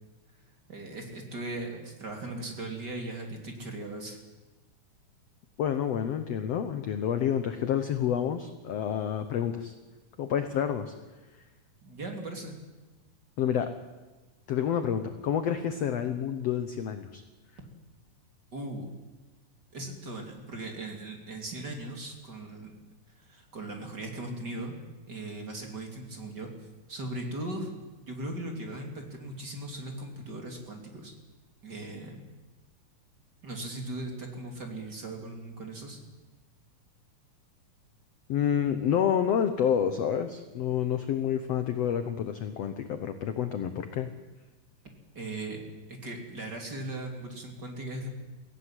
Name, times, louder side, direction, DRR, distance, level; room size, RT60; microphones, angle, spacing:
voice 1, 0.7-4.2 11.8-12.5 18.5-18.9 19.7-22.7 23.2-24.7 25.1-26.5 26.9-27.7 28.0-31.1 31.6-32.3 33.4-36.0 45.1-45.6 45.9-48.1, right 2 dB, 30° right, 2 dB, 3.0 m, -38 dB
voice 2, 5.6-9.7 10.2-10.9 13.4-13.7 14.5-17.2 38.3-44.1, left 9 dB, 65° left, 9 dB, 1.6 m, -29 dB
22.5 x 16.5 x 9.8 m, 1.2 s
omnidirectional pair, 4.1 m